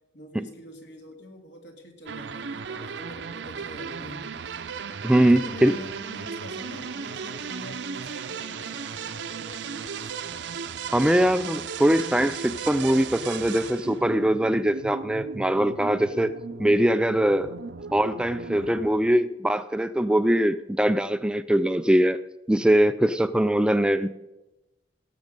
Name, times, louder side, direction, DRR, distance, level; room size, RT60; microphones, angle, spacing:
voice 1, 0.1-4.3 5.2-10.1, left 1 dB, 90° left, 2.2 m, -44 dB
sound 1, 2.1-18.9, right 6 dB, 90° right, 0.6 m, -36 dB
voice 2, 5.0-5.8 10.9-17.5 17.9-22.2 22.5-24.1, right 1 dB, 5° right, 0.3 m, -22 dB
17.5 x 7.2 x 5.3 m
head